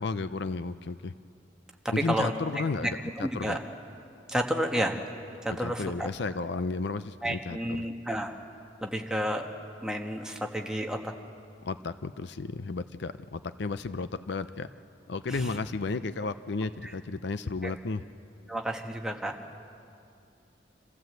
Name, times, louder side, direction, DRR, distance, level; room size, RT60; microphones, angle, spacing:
voice 1, 0.0-1.1 1.9-3.6 5.6-7.8 11.6-14.7 15.1-18.0, left 3 dB, 65° left, 12 dB, 0.5 m, -33 dB
voice 2, 1.8-2.3 2.8-2.9 3.2-3.6 4.3-5.0 5.4-6.1 7.2-8.4 8.8-9.5 9.8-11.1 15.3-15.5 16.8-16.9 17.6-17.7 18.5-19.4, equal, 5° right, 2 dB, 1.3 m, -31 dB
27.0 x 15.5 x 7.9 m, 2.5 s
head